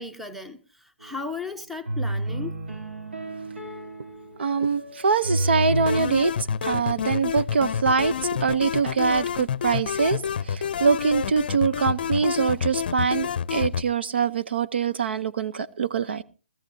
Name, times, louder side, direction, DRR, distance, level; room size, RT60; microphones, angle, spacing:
voice 1, 0.0-2.6, left 3 dB, ahead, 0.9 m, -36 dB
sound 1, 1.0-1.1 1.9-6.1, right 1 dB, 85° right, 3.2 m, -30 dB
voice 2, 4.4-16.2, right 5 dB, 70° right, 0.9 m, -24 dB
sound 2, 5.9-13.8, left 8 dB, 55° left, 0.6 m, -28 dB
20.5 x 14.0 x 2.8 m
hypercardioid pair, 150°, 6 cm